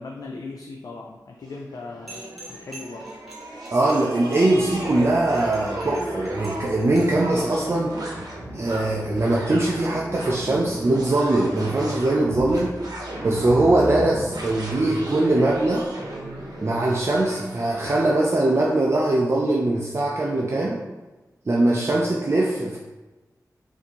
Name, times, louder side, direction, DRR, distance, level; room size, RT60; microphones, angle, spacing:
voice 1, 0.0-3.1, left 3 dB, 65° left, 0 dB, 0.4 m, -38 dB
sound 1, 1.5-18.6, right 1 dB, 80° right, 0.8 m, -35 dB
sound 2, 2.1-7.3, right 1 dB, ahead, 1.3 m, -45 dB
voice 2, 3.7-8.0 8.5-12.8 13.2-15.9 16.6-20.9 21.5-22.8, right 2 dB, 40° right, -3 dB, 0.4 m, -21 dB
4.2 x 2.7 x 2.9 m, 1.2 s
wide cardioid pair, 85°, 7 cm